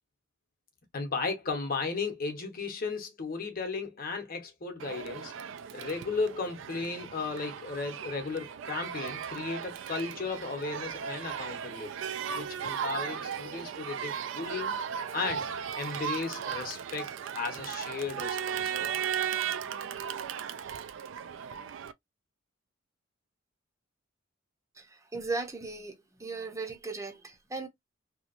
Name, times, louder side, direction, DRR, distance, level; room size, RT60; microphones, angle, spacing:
voice 1, 0.9-5.3 5.7-11.9 12.3-14.8 15.1-15.5 15.7-18.9, left 4 dB, 45° left, 0.9 m, -35 dB
Crowd, 4.8-21.9, right 8 dB, 70° right, 0.3 m, -36 dB
voice 2, 24.7-27.7, right 3 dB, 15° right, 0.6 m, -37 dB
2.8 x 2.2 x 2.5 m
head